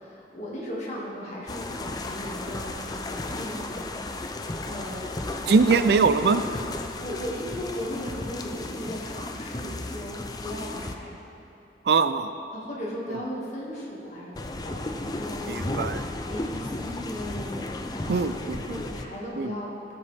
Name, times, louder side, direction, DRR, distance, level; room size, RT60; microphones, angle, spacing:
voice 1, 0.0-3.9 4.6-5.8 7.0-11.1 12.5-15.8 16.3-17.5 17.9-19.9, equal, 40° left, -5 dB, 2.1 m, -37 dB
sound 1, 1.5-10.9 14.4-19.0, left 2 dB, 20° left, 0.5 m, -34 dB
voice 2, 5.5-6.4 11.9-12.3 15.5-16.0 18.1-18.6 19.4-19.5, right 4 dB, 65° right, 11 dB, 0.4 m, -21 dB
17.0 x 6.9 x 3.5 m, 2.9 s
head